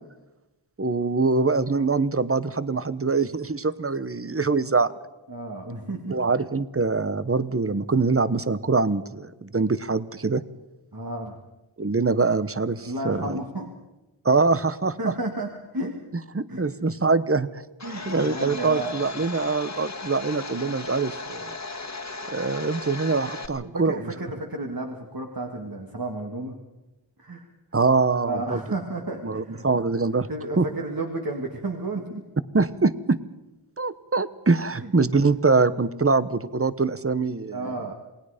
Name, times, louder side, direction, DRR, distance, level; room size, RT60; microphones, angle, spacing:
voice 1, 0.8-4.9 6.1-10.4 11.8-13.4 14.2-15.1 16.3-17.6 18.1-21.5 22.3-24.1 27.7-28.6 29.2-30.3 30.6-30.7 32.5-33.2 33.8-37.7, right 4 dB, 30° right, 15 dB, 0.9 m, -24 dB
voice 2, 5.3-6.2 10.9-11.4 12.8-13.7 15.0-15.9 16.5-16.6 17.8-19.0 23.6-26.6 27.2-27.5 28.3-29.7 29.9-32.3 34.8-34.9 37.5-37.9, right 2 dB, 45° right, 1 dB, 2.2 m, -32 dB
Domestic sounds home sounds, 17.8-23.5, left 3 dB, 35° left, 1.7 m, -36 dB
28.0 x 19.0 x 5.1 m, 1.0 s
wide cardioid pair, 55°, 48 cm